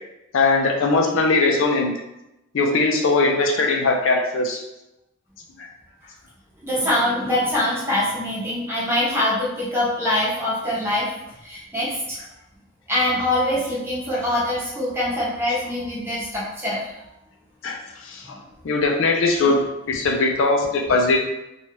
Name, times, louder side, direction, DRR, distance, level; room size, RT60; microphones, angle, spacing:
voice 1, 0.3-2.0 2.5-4.6 5.6-5.7 17.6-18.4 18.6-21.2, left 3 dB, 60° left, 1 dB, 0.4 m, -20 dB
voice 2, 6.6-12.2 12.9-16.9, left 1 dB, 10° right, -7 dB, 0.8 m, -24 dB
2.8 x 2.4 x 3.0 m, 0.91 s
head